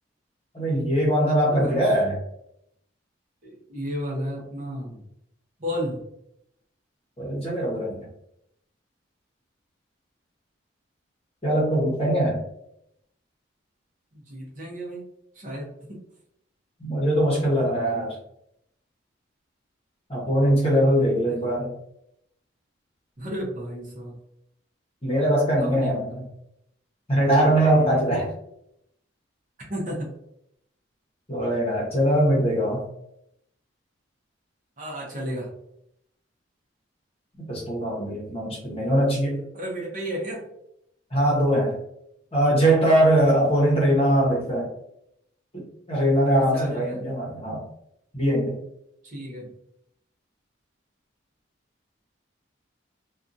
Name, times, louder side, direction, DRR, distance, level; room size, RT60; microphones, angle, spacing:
voice 1, 0.5-2.1 7.2-8.0 11.4-12.4 16.8-18.1 20.1-21.7 25.0-26.1 27.1-28.3 31.3-32.8 37.4-39.4 41.1-41.7 42.3-44.7 45.5-47.6 48.1-48.6, right 1 dB, 30° left, -4 dB, 0.9 m, -21 dB
voice 2, 1.5-1.9 3.4-5.0 5.6-6.0 14.1-15.0 15.3-15.8 20.9-21.4 23.2-24.2 25.6-26.3 27.7-28.1 29.7-30.1 34.8-35.5 39.5-40.5 46.2-47.1 49.0-49.5, equal, 40° right, -3 dB, 0.7 m, -33 dB
2.7 x 2.3 x 2.5 m, 0.77 s
head